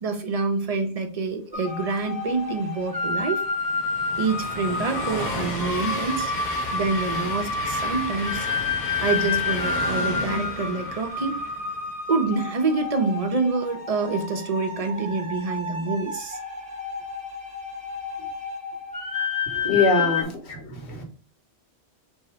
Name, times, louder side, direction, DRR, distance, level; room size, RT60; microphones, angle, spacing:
voice 1, 0.0-3.4 4.2-6.3 6.7-8.5 9.0-11.4 12.1-16.4 18.2-18.3 19.5-19.7 20.2-20.3, right 4 dB, 40° right, 5 dB, 0.6 m, -27 dB
sound 1, 1.5-20.2, left 4 dB, 5° right, 0.9 m, -30 dB
Train, 2.5-11.9, left 2 dB, 60° left, 1.2 m, -34 dB
voice 2, 19.7-21.0, left 3 dB, 75° left, 3 dB, 1.3 m, -23 dB
3.7 x 2.8 x 4.4 m, 0.38 s
omnidirectional pair, 1.1 m